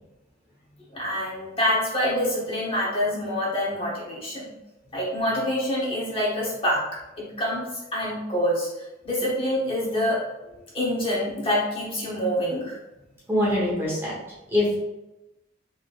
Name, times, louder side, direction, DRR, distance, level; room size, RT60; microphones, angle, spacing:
voice 1, 0.9-4.4 4.9-6.8 7.2-8.7 9.0-10.2 10.7-12.7, equal, 30° left, -6 dB, 1.2 m, -26 dB
voice 2, 13.3-14.2 14.5-14.8, left 1 dB, 10° right, -6 dB, 1.1 m, -23 dB
4.1 x 3.5 x 2.5 m, 0.99 s
head